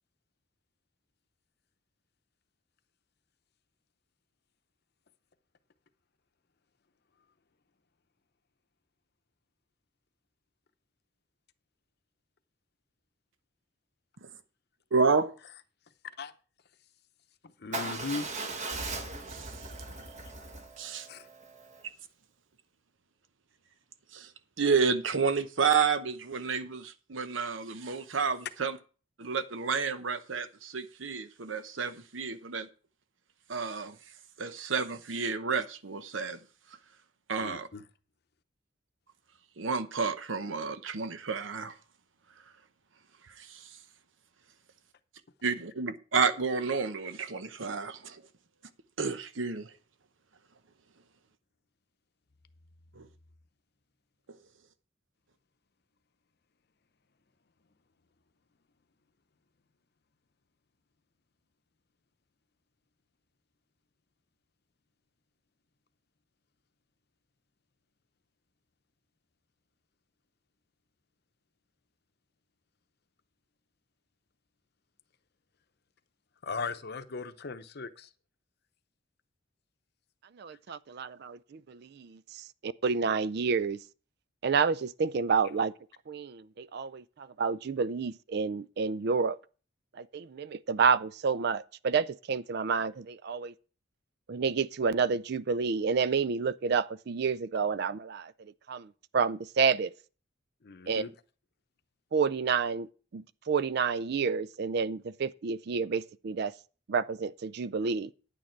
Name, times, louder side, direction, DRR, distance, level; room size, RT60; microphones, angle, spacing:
voice 1, 14.9-15.3 19.3-19.5 20.8-21.1 24.1-24.3 24.6-28.8 29.2-32.7 33.5-34.0 34.4-36.4 37.3-37.7 39.6-41.8 43.4-43.6 45.4-48.2 49.0-49.7 53.0-53.1, right 5 dB, 75° right, 0.9 m, -30 dB
voice 2, 17.6-18.3 21.1-21.3 37.4-37.8 76.4-78.1 100.6-101.1, left 4 dB, 55° left, 0.8 m, -38 dB
Motorcycle / Engine starting / Idling, 17.7-21.8, right 2 dB, 40° right, 1.3 m, -39 dB
voice 3, 80.4-83.8 84.4-85.7 86.1-89.4 90.0-93.5 94.3-98.3 98.7-99.9 100.9-101.1 102.1-102.9 103.1-106.5 106.9-108.1, right 5 dB, 55° right, 0.4 m, -29 dB
10.0 x 9.0 x 4.5 m
head